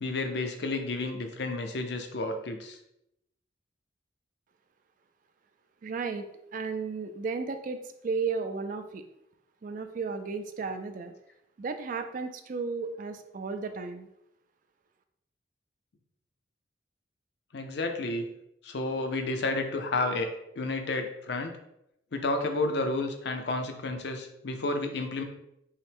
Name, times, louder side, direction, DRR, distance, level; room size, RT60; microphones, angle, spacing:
voice 1, 0.0-2.8 17.5-18.3 18.6-20.3 20.6-21.6 22.1-25.2, left 2 dB, 60° left, 5 dB, 0.5 m, -31 dB
voice 2, 5.8-7.8 8.0-9.0 9.6-11.1 11.6-14.1, right 4 dB, 45° right, 8 dB, 0.3 m, -34 dB
5.5 x 2.1 x 3.4 m, 0.81 s
head